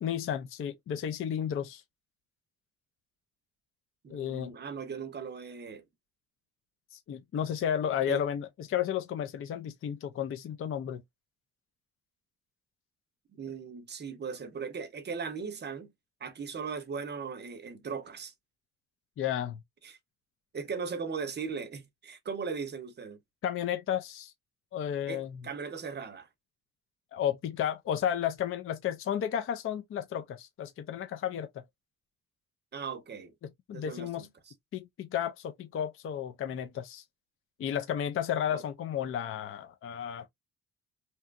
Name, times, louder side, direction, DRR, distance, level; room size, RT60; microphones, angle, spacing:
voice 1, 0.0-1.8 4.1-4.5 6.9-11.0 19.2-19.6 23.4-24.3 24.7-25.5 27.1-31.6 33.4-34.3 34.7-37.0 37.6-40.3, left 9 dB, 45° left, 0.5 m, -33 dB
voice 2, 4.0-5.8 8.1-8.2 13.3-15.9 16.2-18.3 19.8-20.0 20.5-23.2 25.1-26.3 32.7-33.3 33.7-34.3 38.5-38.6, right 5 dB, 35° right, 0.7 m, -38 dB
2.8 x 2.2 x 2.3 m
cardioid pair, 90°, 30 cm